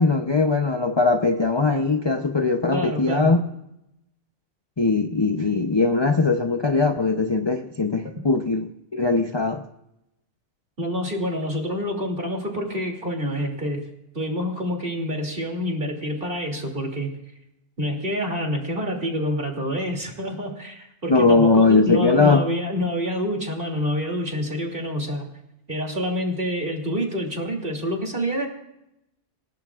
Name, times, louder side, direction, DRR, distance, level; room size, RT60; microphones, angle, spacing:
voice 1, 0.0-3.5 4.8-9.6 21.1-22.4, left 3 dB, 25° left, 5 dB, 0.6 m, -20 dB
voice 2, 2.7-3.3 10.8-13.8 14.1-17.1 17.8-25.3 25.7-28.5, equal, 45° right, 1 dB, 3.0 m, -27 dB
27.0 x 17.0 x 2.5 m, 0.86 s
omnidirectional pair, 1.3 m